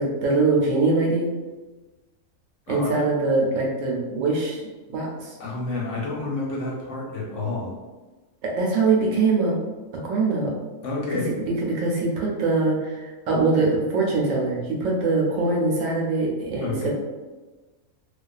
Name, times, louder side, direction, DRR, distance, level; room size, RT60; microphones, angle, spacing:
voice 1, 0.0-1.3 2.7-4.6 4.9-5.3 8.4-9.6 10.0-10.5 11.1-11.2 11.4-16.9, right 3 dB, 70° right, -2 dB, 0.9 m, -23 dB
voice 2, 2.7-3.0 5.4-7.7 10.8-11.3 16.6-16.9, left 2 dB, 65° left, -3 dB, 0.8 m, -29 dB
2.4 x 2.3 x 2.3 m, 1.2 s
omnidirectional pair, 1.5 m